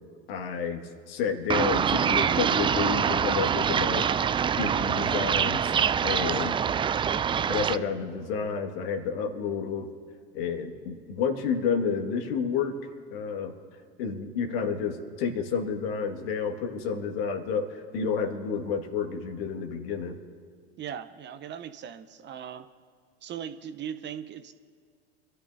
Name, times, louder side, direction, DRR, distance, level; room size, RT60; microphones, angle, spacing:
voice 1, 0.3-4.1 4.6-5.8 6.0-6.6 7.5-9.9 10.3-12.8 13.1-13.5 14.0-20.2, left 6 dB, 65° left, 4 dB, 2.0 m, -30 dB
sound 1, 1.5-7.8, right 7 dB, 15° right, 0.4 m, -25 dB
voice 2, 20.8-22.7 23.2-24.5, right 9 dB, 35° right, 11 dB, 0.8 m, -39 dB
26.0 x 13.5 x 2.7 m, 2.1 s
hypercardioid pair, 75°, 31 cm